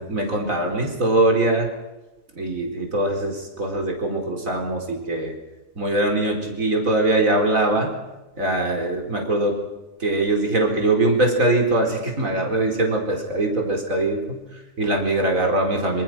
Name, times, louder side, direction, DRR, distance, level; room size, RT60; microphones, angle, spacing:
voice 1, 0.0-1.7 2.4-5.3 5.8-7.9 8.4-9.6 10.0-16.0, right 2 dB, 80° right, 2 dB, 5.0 m, -22 dB
26.5 x 26.5 x 6.1 m, 1.0 s
omnidirectional pair, 1.4 m